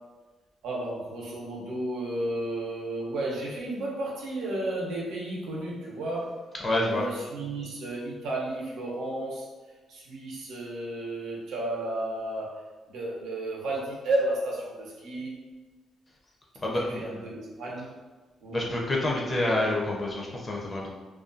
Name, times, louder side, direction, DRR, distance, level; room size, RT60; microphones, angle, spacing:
voice 1, 0.6-6.4 6.8-9.5 9.9-12.6 12.9-15.3 16.6-17.9 18.4-18.7, right 1 dB, 85° right, -3 dB, 0.7 m, -33 dB
voice 2, 6.6-7.0 16.6-17.0 18.5-20.9, left 1 dB, 25° left, -2 dB, 0.5 m, -27 dB
2.4 x 2.2 x 2.5 m, 1.3 s
cardioid pair, 110°, 0 cm